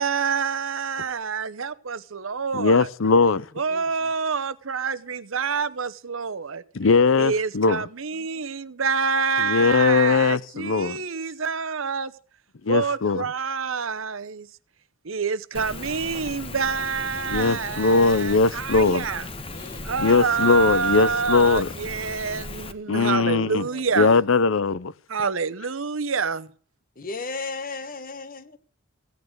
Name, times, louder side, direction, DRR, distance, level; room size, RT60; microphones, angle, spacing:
voice 1, 0.0-2.9 3.6-6.6 7.2-12.1 12.7-14.5 15.0-19.3 19.8-24.2 25.1-26.5, right 5 dB, 75° right, 0.9 m, -27 dB
voice 2, 2.5-3.4 6.7-7.8 9.4-11.0 12.7-13.2 17.3-19.0 20.0-21.7 22.9-23.6 24.0-24.9, left 4 dB, 70° left, 0.6 m, -20 dB
voice 3, 3.7-4.1 8.2-8.4 11.0-11.1 19.5-20.3 23.0-24.0 27.0-28.6, left 3 dB, 45° left, 1.2 m, -38 dB
Rain, 15.5-22.7, left 2 dB, 25° left, 1.4 m, -37 dB
16.0 x 8.9 x 7.9 m
head